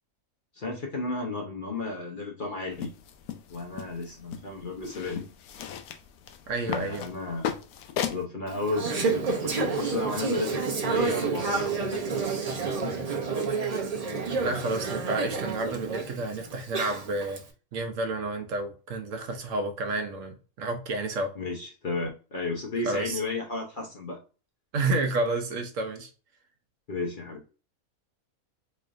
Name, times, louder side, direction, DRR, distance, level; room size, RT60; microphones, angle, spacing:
voice 1, 0.5-2.9 3.5-5.3 6.6-7.5 8.1-12.0 12.7-13.1 21.4-24.2 26.9-27.4, left 3 dB, 45° left, 0.8 m, -33 dB
sound 1, 2.7-8.3, left 9 dB, 90° left, 1.1 m, -37 dB
voice 2, 6.5-7.1 14.2-17.4 17.7-21.3 22.8-23.2 24.7-26.1, right 2 dB, 65° right, 1.0 m, -30 dB
Conversation / Chatter, 8.5-17.4, right 4 dB, 45° right, 0.5 m, -29 dB
3.8 x 3.2 x 2.5 m
omnidirectional pair, 1.5 m